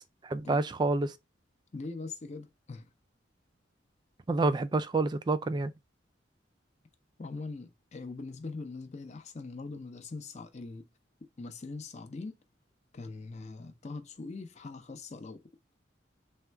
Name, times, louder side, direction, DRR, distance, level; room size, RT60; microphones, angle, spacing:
voice 1, 0.2-1.1 4.3-5.7, right 3 dB, 25° right, 0.3 m, -28 dB
voice 2, 1.7-2.9 7.2-10.9 11.4-12.4 12.9-15.4, left 3 dB, 40° left, 0.6 m, -42 dB
3.6 x 2.2 x 4.3 m
head